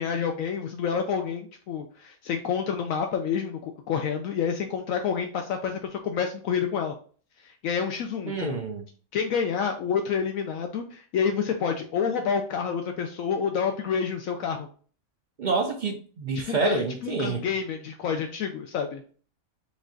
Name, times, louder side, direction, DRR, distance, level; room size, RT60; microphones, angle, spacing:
voice 1, 0.0-6.9 7.4-8.6 9.1-14.7 16.5-19.0, left 6 dB, 75° left, 0.9 m, -28 dB
voice 2, 8.3-8.8 15.4-17.4, right 4 dB, 85° right, 0.4 m, -28 dB
5.2 x 2.4 x 3.7 m
omnidirectional pair, 1.5 m